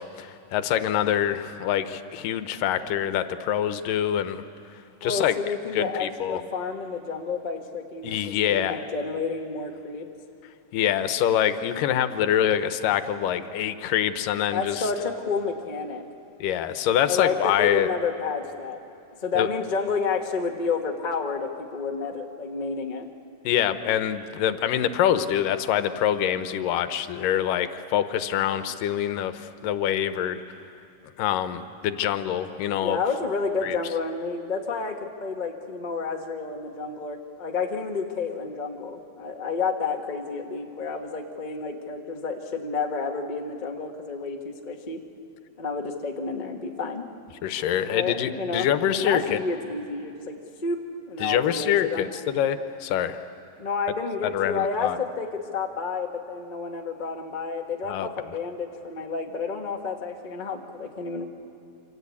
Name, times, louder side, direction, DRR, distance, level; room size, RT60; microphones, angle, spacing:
voice 1, 0.0-4.4 5.0-5.3 5.7-6.4 8.0-8.8 10.7-14.9 16.4-17.9 19.4-19.5 23.4-30.4 31.2-33.0 33.6-33.8 47.4-49.4 51.2-53.2 54.2-55.0 57.9-58.1, left 10 dB, 85° left, 10 dB, 2.5 m, -25 dB
voice 2, 5.0-10.1 14.5-16.0 17.0-18.8 19.2-23.1 32.7-45.0 45.6-47.0 47.9-48.7 48.9-52.1 53.6-61.2, left 4 dB, 65° left, 2 dB, 0.4 m, -30 dB
27.5 x 25.0 x 8.5 m, 2.6 s
omnidirectional pair, 3.8 m